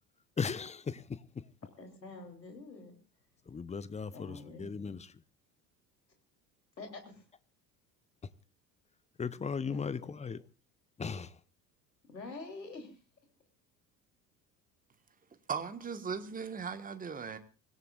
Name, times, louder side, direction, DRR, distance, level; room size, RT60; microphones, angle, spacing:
voice 1, 0.4-1.2 3.5-5.1 9.2-10.4 11.0-11.3, left 5 dB, 15° left, 0.8 m, -37 dB
voice 2, 1.8-3.0 4.1-4.9 6.8-7.2 9.7-10.1 12.1-13.0, left 3 dB, 80° left, 3.4 m, -47 dB
voice 3, 15.5-17.4, right 6 dB, 15° right, 1.5 m, -38 dB
24.5 x 16.5 x 2.5 m
figure-of-eight pair, 65°, 49 cm